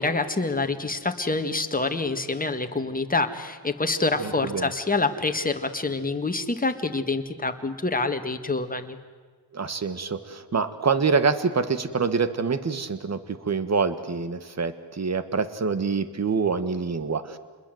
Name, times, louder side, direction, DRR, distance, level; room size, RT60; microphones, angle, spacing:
voice 1, 0.0-9.0, left 3 dB, 20° left, 7 dB, 1.8 m, -26 dB
voice 2, 4.2-4.7 9.5-17.4, right 5 dB, 35° right, 12 dB, 1.6 m, -26 dB
28.0 x 21.0 x 7.9 m, 1.5 s
cardioid pair, 95°, 44 cm